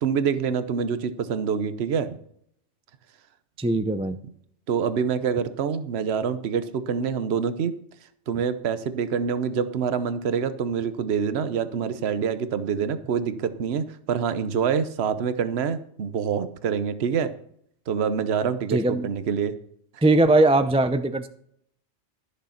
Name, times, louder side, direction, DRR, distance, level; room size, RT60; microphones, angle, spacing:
voice 1, 0.0-2.2 4.7-7.7 8.3-17.3 17.9-19.5, right 7 dB, 65° right, 12 dB, 1.1 m, -26 dB
voice 2, 3.6-4.2 18.7-19.1 20.0-21.3, right 2 dB, 10° right, 9 dB, 0.3 m, -20 dB
13.5 x 6.5 x 5.7 m, 0.67 s
omnidirectional pair, 1.2 m